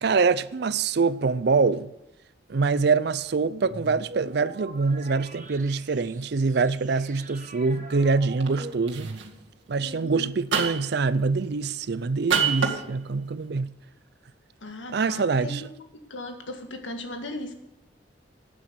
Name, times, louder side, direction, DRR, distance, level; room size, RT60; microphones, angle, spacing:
voice 1, 0.0-1.9 2.5-9.1 9.7-13.7 14.9-15.7, right 4 dB, 60° right, 0.5 m, -25 dB
sound 1, 3.4-9.7, right 2 dB, 40° right, 1.2 m, -43 dB
Bat Bludgeoning, 8.4-8.6 8.9-9.2 10.5-11.0 12.3-12.8, right 6 dB, 90° right, 2.0 m, -24 dB
voice 2, 9.8-10.3 14.6-15.7 16.1-17.5, left 1 dB, 85° left, 1.8 m, -37 dB
12.0 x 8.8 x 6.8 m
head